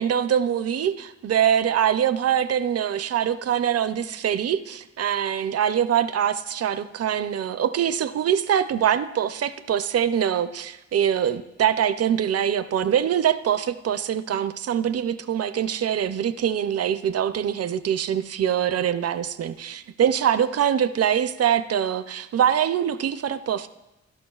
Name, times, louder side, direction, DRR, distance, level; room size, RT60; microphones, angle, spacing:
voice 1, 0.0-23.7, right 9 dB, 55° right, 12 dB, 0.5 m, -23 dB
17.0 x 12.5 x 2.3 m, 1.0 s
wide cardioid pair, 155°, 29 cm